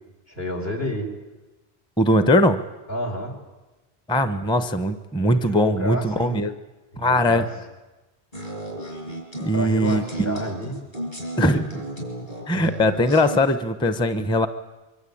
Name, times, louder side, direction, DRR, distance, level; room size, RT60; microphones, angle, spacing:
voice 1, 0.3-1.1 2.9-3.3 5.5-6.4 6.9-7.5 9.5-10.8, equal, 65° left, 1 dB, 4.7 m, -29 dB
voice 2, 2.0-2.6 4.1-6.5 7.0-7.4 9.4-10.4 11.4-11.8 12.5-14.5, left 1 dB, 5° left, 10 dB, 0.9 m, -20 dB
sound 1, 8.3-13.4, right 1 dB, 50° left, 6.4 m, -34 dB
24.5 x 24.0 x 8.7 m, 1.1 s
omnidirectional pair, 1.1 m